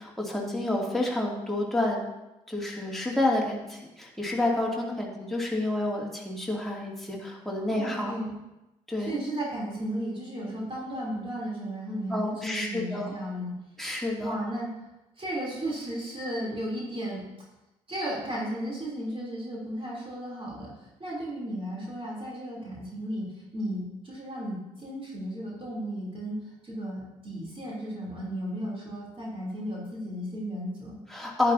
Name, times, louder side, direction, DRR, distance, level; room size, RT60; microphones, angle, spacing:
voice 1, 0.0-2.0 2.5-8.1 8.9-9.1 12.1-13.1 13.8-14.3 31.1-31.5, left 2 dB, ahead, -3 dB, 2.5 m, -29 dB
voice 2, 7.7-8.4 9.0-13.5 14.2-14.8 15.2-17.2 17.9-31.0, right 1 dB, 30° right, -4 dB, 3.3 m, -34 dB
11.0 x 9.1 x 2.8 m, 0.97 s
figure-of-eight pair, 45°, 18 cm